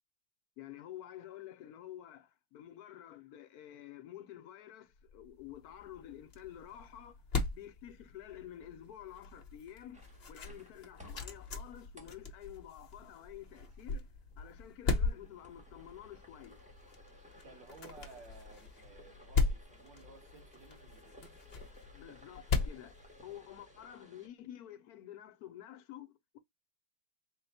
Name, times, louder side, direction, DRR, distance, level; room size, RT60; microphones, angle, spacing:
voice 1, 0.6-7.2 7.5-14.1 14.4-16.6 21.9-26.4, left 11 dB, 70° left, 1.0 m, -50 dB
sound 1, 5.0-23.8, left 4 dB, 45° left, 0.9 m, -39 dB
sound 2, 9.9-24.3, left 1 dB, 5° right, 0.5 m, -59 dB
voice 2, 17.4-21.4, right 3 dB, 85° right, 2.0 m, -56 dB
3.9 x 2.1 x 4.1 m
omnidirectional pair, 1.9 m